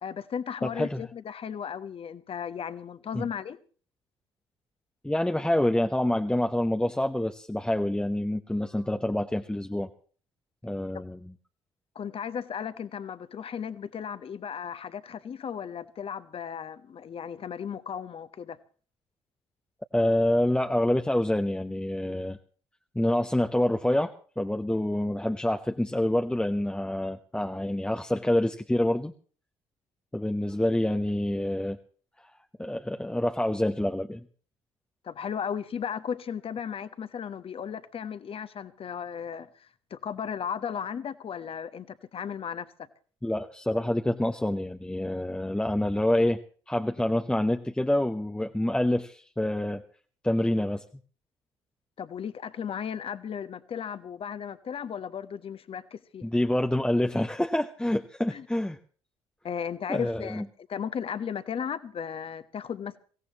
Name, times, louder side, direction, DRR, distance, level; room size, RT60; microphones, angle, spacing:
voice 1, 0.0-3.6 11.9-18.6 35.0-42.7 52.0-56.3 58.3-58.5 59.4-63.0, left 7 dB, 45° left, 1.2 m, -35 dB
voice 2, 0.6-1.0 3.1-3.3 5.0-9.9 10.6-11.3 19.9-22.4 22.9-29.1 30.1-31.8 32.6-34.2 43.2-46.4 46.7-49.8 50.2-50.8 56.2-58.8 59.9-60.4, left 1 dB, 5° left, 0.9 m, -27 dB
23.0 x 17.0 x 3.0 m
hypercardioid pair, 50°, 14 cm